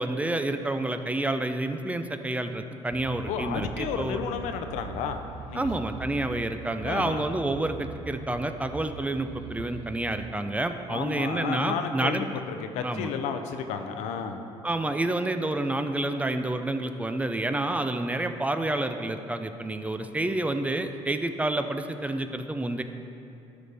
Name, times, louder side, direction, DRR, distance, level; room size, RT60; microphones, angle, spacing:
voice 1, 0.0-4.2 5.5-12.4 12.8-13.1 14.6-22.8, right 2 dB, 10° right, 8 dB, 0.4 m, -29 dB
sound 1, 2.9-10.3, right 5 dB, 60° right, 0.6 m, -42 dB
voice 2, 3.3-5.7 6.8-7.2 10.9-12.3 12.6-14.4, left 7 dB, 85° left, 7 dB, 0.6 m, -32 dB
12.5 x 5.1 x 3.4 m, 2.8 s
cardioid pair, 110°, 12 cm